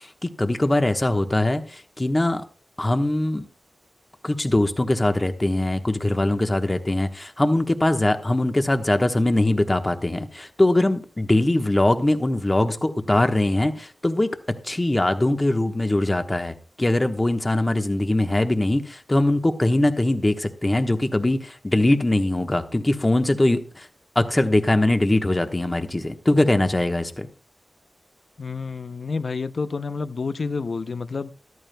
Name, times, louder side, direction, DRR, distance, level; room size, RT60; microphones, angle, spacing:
voice 1, 0.2-1.6 2.0-2.4 2.8-3.4 4.2-14.4 14.6-23.6 24.1-27.3, left 1 dB, 25° left, 1.1 m, -21 dB
voice 2, 28.4-31.3, left 4 dB, 65° left, 0.6 m, -29 dB
14.5 x 13.0 x 2.2 m
wide cardioid pair, 90°, 0 cm